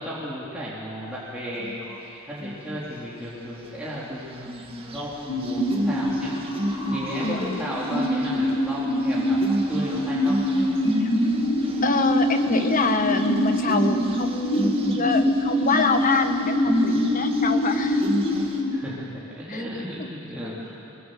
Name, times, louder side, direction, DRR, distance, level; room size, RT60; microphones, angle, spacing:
voice 1, 0.0-6.4 6.9-10.4 18.7-21.0, equal, 5° right, -9 dB, 3.6 m, -34 dB
sound 1, 1.5-2.0 2.4-2.9 3.4-18.6, equal, 30° right, 2.2 m, -33 dB
sound 2, 5.3-18.7, left 1 dB, 80° left, 4.8 m, -24 dB
voice 2, 7.2-7.6 11.0-11.1 11.8-18.0 19.5-19.6 20.0-20.1, left 4 dB, 40° left, 7 dB, 1.3 m, -26 dB
23.5 x 22.0 x 7.8 m, 2.7 s
head